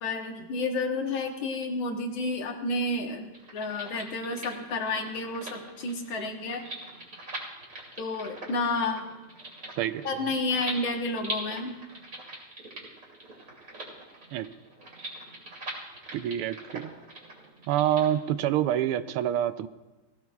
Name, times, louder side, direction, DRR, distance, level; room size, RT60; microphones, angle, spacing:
voice 1, 0.0-3.3 3.5-6.7 8.0-9.1 10.1-11.8, left 2 dB, 70° left, 3 dB, 2.1 m, -30 dB
sound 1, 3.3-18.1, right 2 dB, 35° right, 3.2 m, -42 dB
voice 2, 9.8-10.1 14.3-14.5 16.1-16.9 17.7-19.7, right 11 dB, 85° right, 12 dB, 1.5 m, -27 dB
20.0 x 16.5 x 2.4 m, 1.1 s
omnidirectional pair, 2.4 m